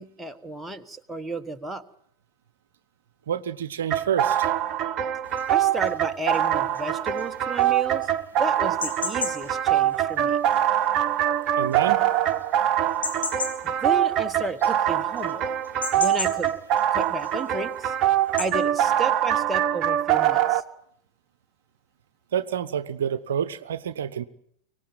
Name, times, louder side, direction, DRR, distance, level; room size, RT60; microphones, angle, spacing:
voice 1, 0.0-1.8 5.5-8.1 8.4-10.4 13.6-15.5 15.9-16.5 16.9-17.9 18.4-20.6, right 2 dB, 5° right, 5 dB, 1.4 m, -33 dB
voice 2, 3.3-4.5 11.6-12.0 22.3-24.3, right 8 dB, 60° right, 15 dB, 0.9 m, -28 dB
sound 1, 3.9-20.6, right 11 dB, 35° right, 1.2 m, -24 dB
sound 2, 5.2-18.5, left 4 dB, 75° left, 3.2 m, -37 dB
24.5 x 19.0 x 9.1 m, 0.72 s
figure-of-eight pair, 90°, 0 cm